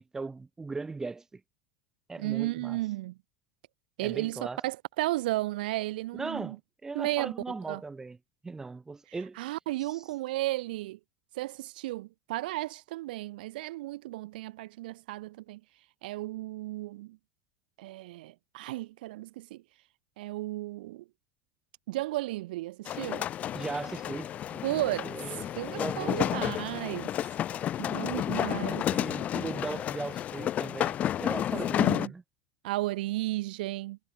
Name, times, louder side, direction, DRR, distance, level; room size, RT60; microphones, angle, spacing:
voice 1, 0.0-1.4 2.1-2.8 4.0-4.6 6.1-8.2 8.4-9.4 9.9-10.0 23.5-24.6 25.0-26.5 28.9-32.2, right 3 dB, 10° right, 1.5 m, -38 dB
voice 2, 2.2-3.2 4.0-6.6 6.9-7.8 9.4-11.0 11.3-15.6 16.0-17.2 17.8-19.6 20.2-21.0 21.9-23.3 24.6-27.1 27.8-28.9 31.8-32.1 32.6-34.0, right 18 dB, 90° right, 2.2 m, -34 dB
sound 1, 22.8-32.1, left 11 dB, 30° left, 0.6 m, -31 dB
supercardioid pair, 155°, 5 cm